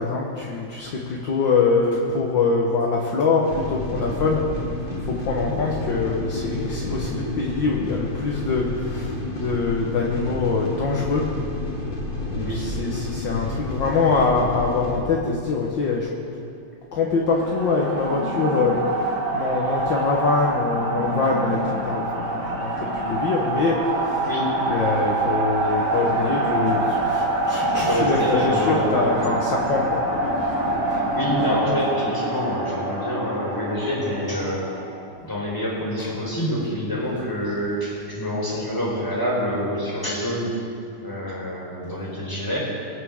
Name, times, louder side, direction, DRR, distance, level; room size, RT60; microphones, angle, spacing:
voice 1, 0.0-4.4 5.0-11.3 12.3-16.1 16.9-24.3 24.7-30.0 30.3-30.6, left 4 dB, 55° left, -2 dB, 1.4 m, -24 dB
sound 1, 3.4-15.0, left 2 dB, 40° left, 3.1 m, -30 dB
sound 2, 17.3-35.0, right 2 dB, 30° right, 1.6 m, -25 dB
voice 2, 27.7-29.0 31.1-34.7 35.2-40.5 41.0-42.6, equal, 5° left, -5 dB, 4.0 m, -26 dB
24.5 x 9.5 x 3.6 m, 2.4 s
omnidirectional pair, 3.4 m